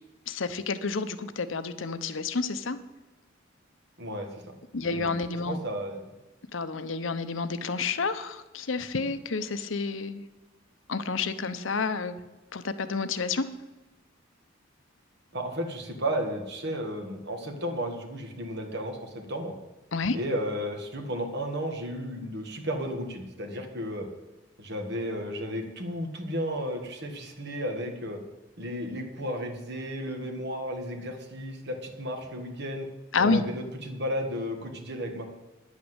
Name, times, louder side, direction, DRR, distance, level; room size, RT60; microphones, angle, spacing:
voice 1, 0.3-2.8 4.7-5.6 6.5-10.2 10.9-12.2 12.5-13.5 19.9-20.2 33.1-33.4, left 4 dB, 80° left, 12 dB, 0.8 m, -29 dB
voice 2, 4.0-4.6 4.8-5.1 5.5-6.1 15.3-19.5 20.1-24.1 24.6-28.2 28.6-32.9 33.2-35.3, equal, 60° right, 3 dB, 2.0 m, -33 dB
10.0 x 8.4 x 8.0 m, 1.1 s
head